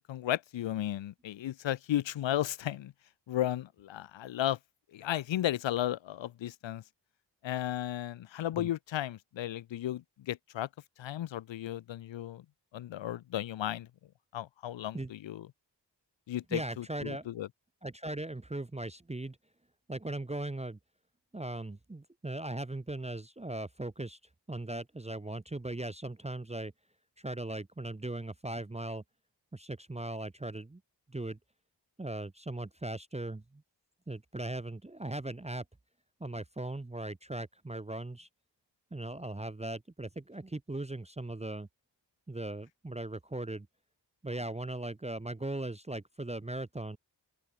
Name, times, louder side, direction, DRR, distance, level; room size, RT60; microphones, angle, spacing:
voice 1, 0.0-2.9 3.3-4.6 4.9-6.8 7.4-10.7 11.0-12.4 12.7-13.9 14.3-15.5 16.3-17.5, left 12 dB, 80° left, 0.6 m, -34 dB
voice 2, 16.5-17.5 17.8-19.4 19.9-20.8 21.3-24.2 24.5-26.7 27.2-29.0 29.5-30.8 31.1-31.4 32.0-33.6 34.1-35.6 36.2-38.3 38.9-41.7 42.3-43.7 44.2-47.0, right 2 dB, 15° right, 0.8 m, -38 dB
open air
cardioid pair, 55°, 44 cm